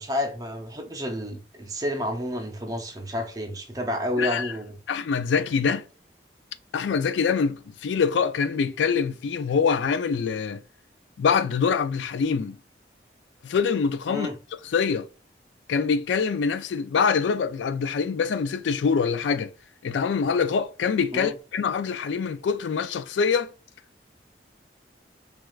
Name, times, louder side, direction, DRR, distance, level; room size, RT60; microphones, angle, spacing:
voice 1, 0.0-4.7 14.1-14.4 21.1-21.3, left 1 dB, 20° right, 0.6 m, -30 dB
voice 2, 4.2-4.5 4.9-5.8 6.7-10.6 11.2-12.6 13.4-14.3 14.7-15.1 15.7-19.5 19.8-23.5, left 5 dB, 80° left, 0.3 m, -24 dB
6.1 x 2.4 x 2.4 m
head